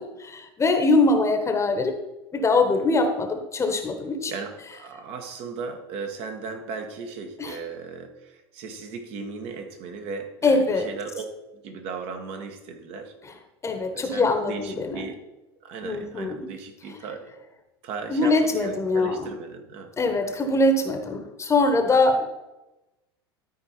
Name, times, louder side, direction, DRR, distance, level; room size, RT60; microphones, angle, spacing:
voice 1, 0.0-1.9 2.3-4.3 7.4-7.6 10.4-10.9 13.6-15.1 15.8-16.5 18.1-19.3 20.0-22.3, left 2 dB, 20° left, 6 dB, 1.2 m, -23 dB
voice 2, 4.3-11.2 11.5-13.1 13.9-15.2 15.6-17.3 17.8-19.9, right 4 dB, 50° right, 5 dB, 1.4 m, -36 dB
12.5 x 4.6 x 4.3 m, 1.0 s
hypercardioid pair, 80°, 13 cm